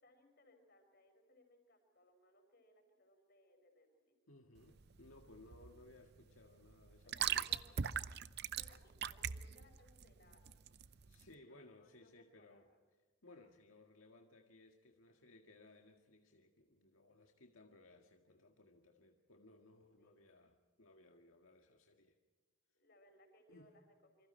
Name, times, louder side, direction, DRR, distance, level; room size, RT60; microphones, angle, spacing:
voice 1, 0.0-4.1 7.0-7.8 8.5-10.6 11.3-12.8 20.0-20.3 22.7-24.3, left 1 dB, 50° left, 5.9 m, -67 dB
voice 2, 4.3-7.5 11.1-12.7 13.2-22.2 23.5-23.7, left 2 dB, 90° left, 1.9 m, -62 dB
sound 1, 4.6-11.3, right 8 dB, 50° right, 0.7 m, -42 dB
27.5 x 25.5 x 4.5 m
head